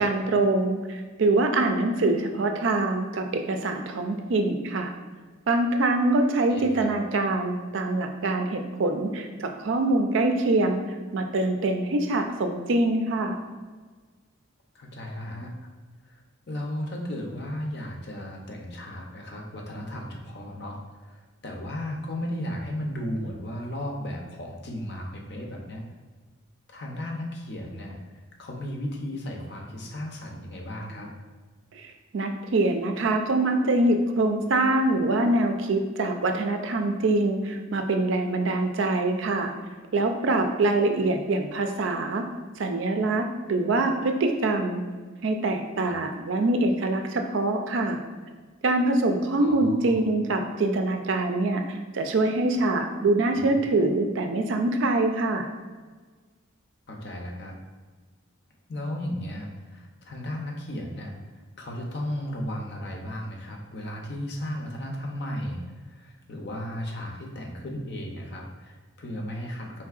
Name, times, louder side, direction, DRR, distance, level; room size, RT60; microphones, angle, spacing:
voice 1, 0.0-4.9 5.5-10.8 11.1-13.4 31.7-39.5 39.9-42.2 42.6-44.8 45.2-48.0 48.6-55.5, right 2 dB, 60° right, 5 dB, 0.4 m, -24 dB
voice 2, 6.5-6.9 14.7-15.5 16.1-16.2 16.5-25.8 26.7-31.1 45.8-45.9 49.3-50.0 53.5-53.6 56.9-57.5 58.7-61.2 61.6-69.9, left 1 dB, 50° left, 0 dB, 0.6 m, -35 dB
4.5 x 3.6 x 2.4 m, 1.4 s
head